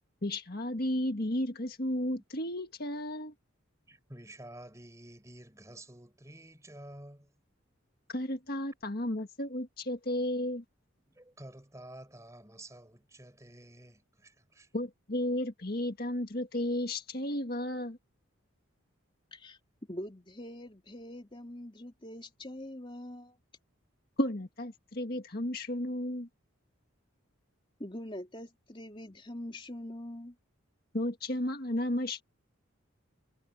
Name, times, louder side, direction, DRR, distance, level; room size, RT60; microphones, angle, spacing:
voice 1, 0.2-3.3 8.1-10.6 14.7-18.0 24.2-26.3 30.9-32.2, left 1 dB, 50° left, 1.8 m, -33 dB
voice 2, 3.9-7.3 11.1-14.7, right 1 dB, 15° right, 4.6 m, -50 dB
voice 3, 19.9-23.4 27.8-30.3, left 1 dB, 25° left, 3.1 m, -43 dB
head